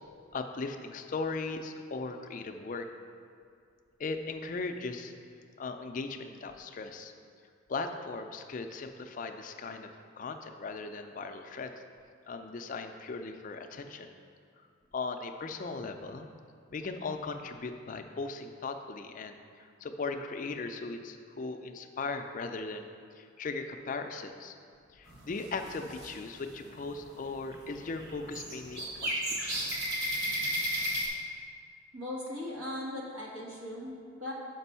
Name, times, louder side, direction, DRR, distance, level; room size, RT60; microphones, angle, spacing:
voice 1, 0.3-2.9 4.0-5.1 5.6-7.1 7.7-9.9 10.2-11.7 12.3-14.1 14.9-16.3 16.7-24.6 24.9-29.7, left 3 dB, 40° left, 6 dB, 0.4 m, -38 dB
sound 1, 25.1-26.1 26.6-27.0 27.3-31.1, equal, 55° right, 1.3 m, -33 dB
voice 2, 31.9-34.3, left 1 dB, 90° right, -5 dB, 1.7 m, -39 dB
6.0 x 5.2 x 5.5 m, 2.3 s
head